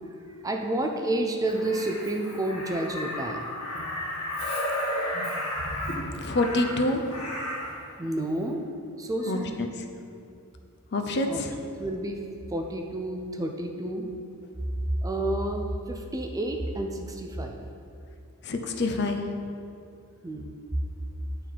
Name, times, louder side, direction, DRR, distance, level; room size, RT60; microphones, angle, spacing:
voice 1, 0.4-3.4 8.0-8.7 9.0-9.6 11.3-11.4 11.8-12.2 12.5-14.0 15.0-17.6 20.2-20.5, right 1 dB, 15° right, 3 dB, 0.4 m, -30 dB
Crow, 1.5-7.8 9.2-9.4, left 1 dB, 80° left, 1.5 m, -33 dB
voice 2, 6.2-7.1 9.3-9.7 10.9-11.6 18.4-19.3, left 2 dB, 50° left, 5 dB, 0.5 m, -27 dB
8.8 x 3.8 x 4.6 m, 2.5 s
head